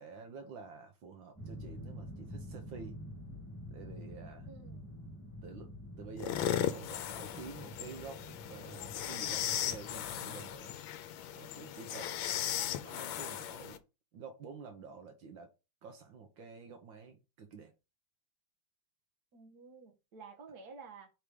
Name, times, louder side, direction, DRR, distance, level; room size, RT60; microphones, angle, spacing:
voice 1, 0.0-3.0 3.7-4.5 5.4-5.7 6.0-10.8 11.3-12.2 12.8-13.8 14.1-15.5 15.8-17.7, right 5 dB, 75° right, 1.7 m, -49 dB
sound 1, 1.4-10.6, equal, 10° left, 2.2 m, -48 dB
voice 2, 4.5-5.0 19.3-21.1, right 4 dB, 55° right, 1.6 m, -52 dB
sound 2, 6.2-13.8, left 11 dB, 80° left, 1.4 m, -37 dB
4.9 x 4.6 x 5.2 m
omnidirectional pair, 2.1 m